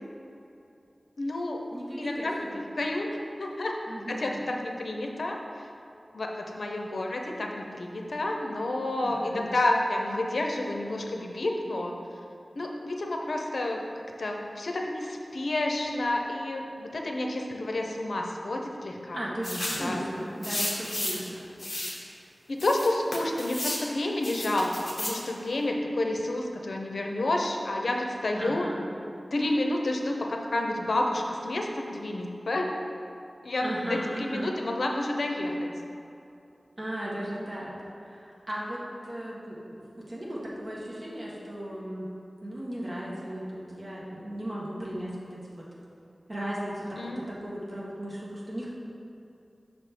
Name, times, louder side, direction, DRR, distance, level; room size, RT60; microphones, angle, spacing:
voice 1, 1.2-1.7 2.0-3.8 4.1-5.7 6.1-11.9 12.6-13.8 14.2-19.2 19.4-20.1 22.5-24.7 25.0-28.7 29.3-32.7 33.4-35.7 46.9-47.2, left 1 dB, 75° left, 1 dB, 0.6 m, -30 dB
voice 2, 1.7-2.3 3.9-4.4 9.0-9.5 19.1-21.4 28.4-28.8 33.6-34.5 36.8-37.7 38.1-42.1 42.4-45.6 46.3-48.7, right 1 dB, 45° right, -6 dB, 1.5 m, -36 dB
sound 1, 19.4-19.9 20.4-21.3 21.6-22.0 22.6-23.9 24.2-25.2, left 1 dB, 30° left, 1.1 m, -33 dB
6.2 x 3.5 x 5.8 m, 2.7 s
wide cardioid pair, 85°, 0 cm